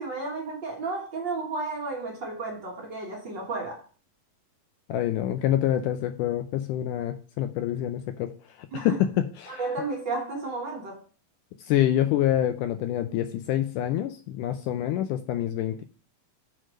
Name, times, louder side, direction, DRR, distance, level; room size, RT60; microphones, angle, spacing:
voice 1, 0.0-3.8 8.7-9.0 9.5-11.0, right 3 dB, 55° right, 1.3 m, -32 dB
voice 2, 4.9-8.3 8.7-9.6 11.7-15.8, left 12 dB, 80° left, 1.9 m, -26 dB
6.5 x 4.7 x 6.2 m
omnidirectional pair, 4.1 m